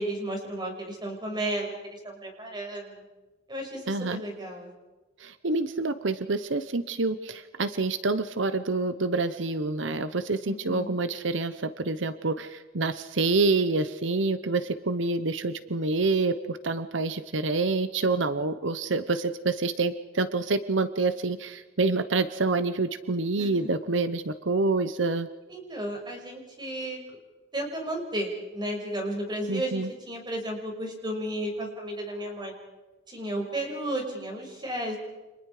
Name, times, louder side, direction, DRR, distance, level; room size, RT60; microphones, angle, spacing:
voice 1, 0.0-3.0 3.5-4.7 10.4-10.9 23.4-23.7 25.5-27.0 27.5-32.5 33.1-35.0, right 1 dB, 25° right, 1 dB, 6.4 m, -33 dB
voice 2, 3.9-4.2 5.2-25.3 29.5-29.9, right 3 dB, 85° right, 11 dB, 1.0 m, -27 dB
30.0 x 27.0 x 5.0 m, 1.1 s
head